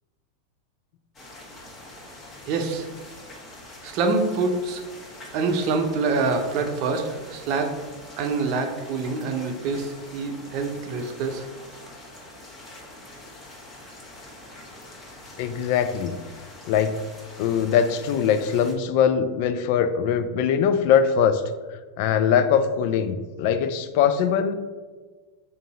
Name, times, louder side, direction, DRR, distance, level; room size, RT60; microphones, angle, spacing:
sound 1, 1.1-18.7, left 1 dB, 30° left, 1.2 m, -44 dB
voice 1, 2.4-2.9 3.8-4.8 5.3-7.7 8.2-11.4, right 4 dB, 55° right, 5 dB, 0.6 m, -26 dB
voice 2, 15.4-16.2 16.7-17.0 17.4-21.4 22.0-24.5, left 7 dB, 60° left, 11 dB, 0.4 m, -21 dB
3.8 x 2.7 x 4.0 m, 1.3 s
hypercardioid pair, 105°, 0 cm